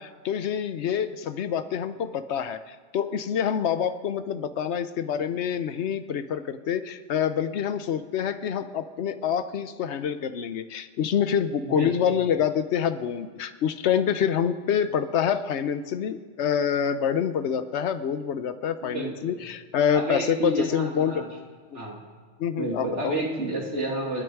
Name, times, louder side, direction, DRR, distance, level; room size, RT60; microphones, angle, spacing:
voice 1, 0.0-21.3 21.7-21.8 22.4-23.2, left 8 dB, 70° left, 11 dB, 1.1 m, -26 dB
voice 2, 11.6-12.0 18.8-19.4 19.9-21.3 21.7-22.0 22.6-24.2, right 1 dB, 75° right, -1 dB, 3.0 m, -30 dB
28.5 x 9.9 x 4.7 m, 1.4 s
omnidirectional pair, 1.2 m